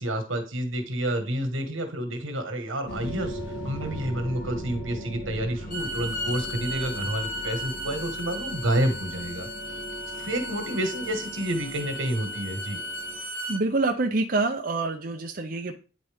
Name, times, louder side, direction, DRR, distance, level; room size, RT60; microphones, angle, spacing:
voice 1, 0.0-3.4 3.6-9.5 10.2-12.8, right 1 dB, 85° right, 5 dB, 1.6 m, -29 dB
sound 1, 2.9-13.2, equal, 70° left, 1.6 m, -39 dB
Bowed string instrument, 5.5-13.6, equal, 40° left, 3.9 m, -35 dB
voice 2, 13.5-15.7, right 3 dB, 45° right, 3 dB, 0.6 m, -26 dB
9.5 x 4.2 x 3.5 m, 0.34 s
head